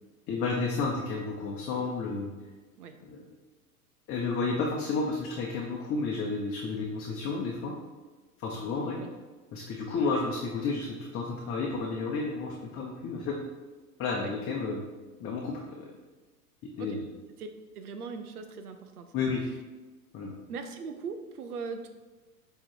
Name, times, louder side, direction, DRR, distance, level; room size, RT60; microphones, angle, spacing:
voice 1, 0.3-2.3 3.0-3.2 4.1-7.8 8.4-9.0 9.5-13.4 14.0-14.8 15.2-15.9 16.6-17.0 19.1-19.4 20.1-20.3, left 4 dB, 30° left, -1 dB, 1.0 m, -31 dB
voice 2, 8.5-9.1 14.2-14.3 16.8-17.0 17.4-17.5 17.7-19.1 20.5-21.9, right 5 dB, 70° right, 7 dB, 0.9 m, -40 dB
8.5 x 3.4 x 4.6 m, 1.3 s
figure-of-eight pair, 95°, 47 cm